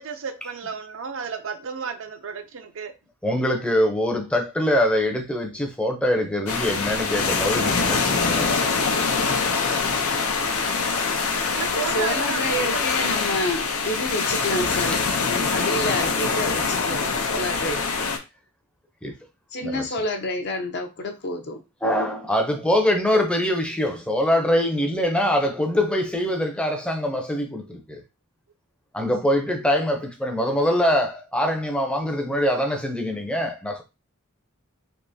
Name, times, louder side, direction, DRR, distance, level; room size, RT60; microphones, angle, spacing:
voice 1, 0.0-2.9 11.5-12.9, right 6 dB, 65° right, 0.5 m, -33 dB
voice 2, 3.2-8.5 14.7-14.8 19.0-19.2 19.6-19.8 21.8-28.0 28.9-33.8, equal, 5° left, 0.6 m, -23 dB
sound 1, 6.5-18.2, left 4 dB, 90° left, 0.7 m, -24 dB
voice 3, 11.7-18.1 19.5-21.6, left 1 dB, 50° left, 0.6 m, -29 dB
3.5 x 2.9 x 2.7 m
head